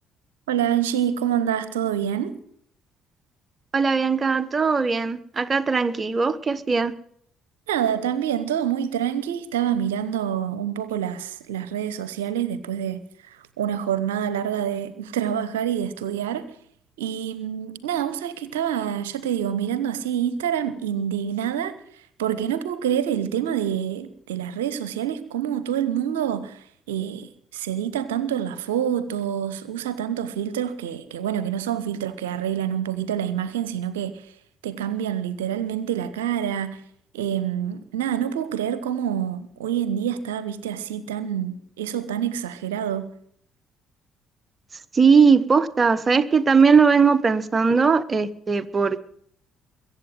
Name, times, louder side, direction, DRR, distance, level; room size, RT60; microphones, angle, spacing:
voice 1, 0.5-2.3 7.7-13.0 13.6-16.5 17.0-21.7 22.2-26.6 26.9-34.2 34.6-36.8 37.1-43.1, right 9 dB, 75° right, 0.9 m, -27 dB
voice 2, 3.7-6.9 44.9-49.1, right 5 dB, 30° right, 1.1 m, -19 dB
22.5 x 8.2 x 7.6 m
figure-of-eight pair, 50°, 0 cm